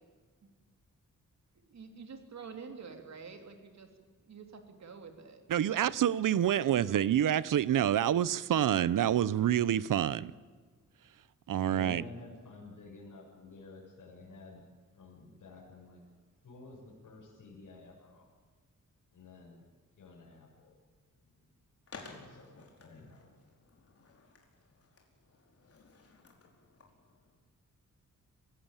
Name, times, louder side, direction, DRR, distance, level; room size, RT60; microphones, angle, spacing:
voice 1, 1.7-3.9 4.3-5.4 6.7-7.0, right 5 dB, 60° right, 6 dB, 3.3 m, -48 dB
voice 2, 5.5-10.3 11.5-12.0, right 10 dB, 80° right, 19 dB, 0.8 m, -27 dB
voice 3, 11.6-14.6 14.9-16.0 16.4-18.3 19.1-19.7 20.0-20.8 21.2-21.4 22.0-23.2, left 3 dB, 75° left, -5 dB, 7.3 m, -51 dB
Skateboard, 21.9-27.4, left 4 dB, 50° left, 4.8 m, -55 dB
27.0 x 16.0 x 9.0 m, 1.5 s
wide cardioid pair, 145°, 31 cm